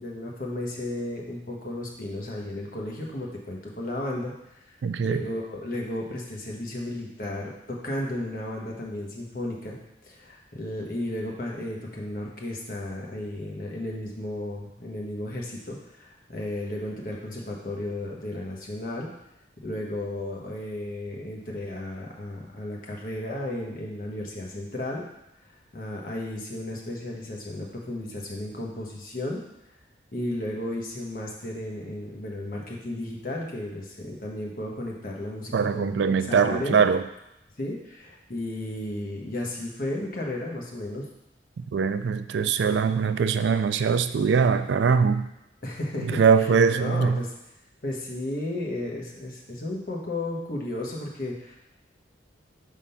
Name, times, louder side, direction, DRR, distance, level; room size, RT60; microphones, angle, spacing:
voice 1, 0.0-4.3 4.6-9.8 10.0-19.1 19.6-25.0 25.7-29.4 30.1-36.9 37.6-41.0 45.6-47.3 47.8-51.6, left 1 dB, 50° left, -2 dB, 1.1 m, -34 dB
voice 2, 4.8-5.2 35.5-37.0 41.7-45.3 46.1-47.2, right 6 dB, 70° right, 10 dB, 0.3 m, -22 dB
5.0 x 3.7 x 5.6 m, 0.86 s
head